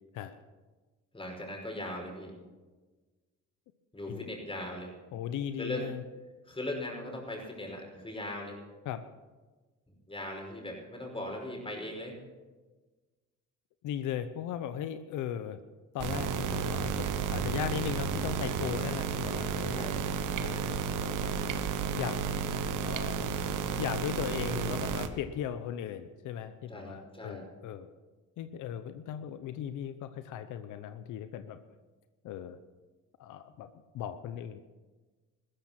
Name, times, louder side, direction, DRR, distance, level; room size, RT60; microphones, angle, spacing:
voice 1, 1.1-2.3 3.9-4.9 5.6-5.9 6.4-8.6 10.1-12.1 19.7-20.1 26.7-27.4, left 1 dB, 15° left, 1 dB, 5.4 m, -39 dB
voice 2, 5.1-6.0 8.8-9.0 13.8-15.6 15.9-19.9 20.4-22.2 22.8-23.4 23.7-27.9 28.4-31.6 32.2-32.6 33.2-33.7 33.9-34.6, left 9 dB, 90° left, 11 dB, 0.9 m, -38 dB
sound 1, 16.0-25.1, right 6 dB, 85° right, 1.2 m, -32 dB
15.0 x 13.5 x 5.9 m, 1.3 s
cardioid pair, 90°, 30 cm